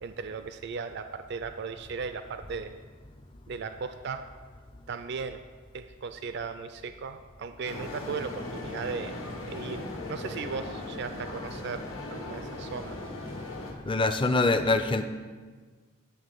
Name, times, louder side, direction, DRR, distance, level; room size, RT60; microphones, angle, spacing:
voice 1, 0.0-2.7 3.5-4.3 4.9-5.4 5.7-9.2 9.5-9.8 10.1-13.0, right 5 dB, 55° right, 9 dB, 0.4 m, -37 dB
sound 1, 7.6-13.7, left 2 dB, 75° left, 1.5 m, -38 dB
voice 2, 13.9-15.1, left 2 dB, 25° left, 8 dB, 0.4 m, -24 dB
11.0 x 3.7 x 6.6 m, 1.5 s
head